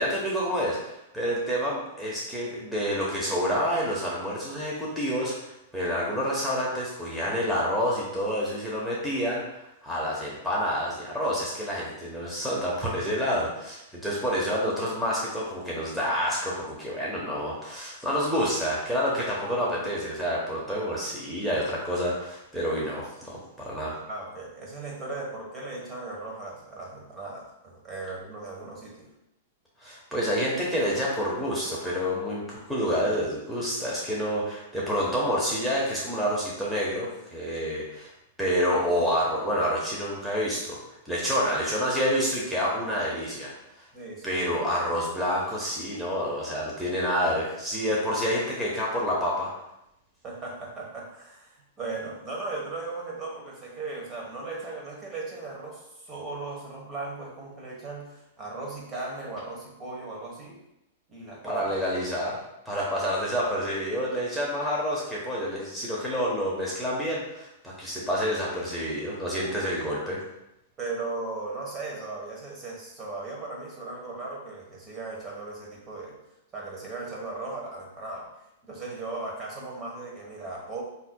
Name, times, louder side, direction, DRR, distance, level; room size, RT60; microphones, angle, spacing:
voice 1, 0.0-5.3 5.7-9.4 9.8-23.9 29.8-38.1 38.4-40.8 41.0-43.5 44.2-49.5 61.4-62.4 62.7-70.2, equal, ahead, -6 dB, 0.9 m, -28 dB
voice 2, 24.1-29.1 43.9-44.3 50.2-60.6 61.1-61.6 69.3-69.7 70.8-76.2 76.5-78.3 78.6-80.8, right 3 dB, 25° right, -2 dB, 1.1 m, -37 dB
5.5 x 2.7 x 2.2 m, 0.86 s
hypercardioid pair, 125°, 0 cm